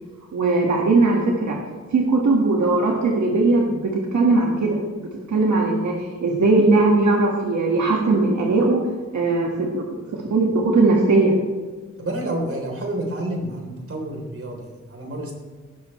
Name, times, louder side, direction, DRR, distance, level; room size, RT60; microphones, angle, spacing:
voice 1, 0.3-1.6 1.9-8.8 9.1-9.9 10.1-11.3, right 3 dB, 75° right, -1 dB, 1.9 m, -19 dB
voice 2, 12.0-15.3, right 1 dB, 50° right, 0 dB, 3.6 m, -29 dB
17.5 x 12.5 x 3.2 m, 1.5 s
wide cardioid pair, 150°, 29 cm